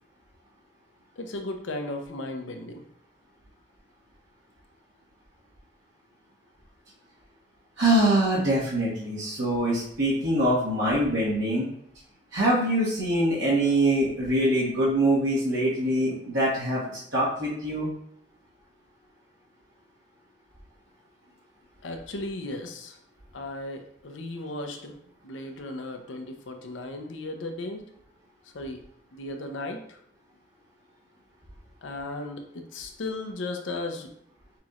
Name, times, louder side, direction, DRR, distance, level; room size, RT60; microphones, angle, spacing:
voice 1, 1.2-2.8 21.8-23.0 23.3-24.9 25.2-27.8 28.5-28.8 29.1-30.0 31.8-34.1, left 2 dB, 75° left, 4 dB, 0.6 m, -35 dB
voice 2, 7.8-11.7 12.3-17.9, right 1 dB, 70° right, -8 dB, 1.2 m, -24 dB
5.8 x 2.9 x 2.4 m, 0.69 s
head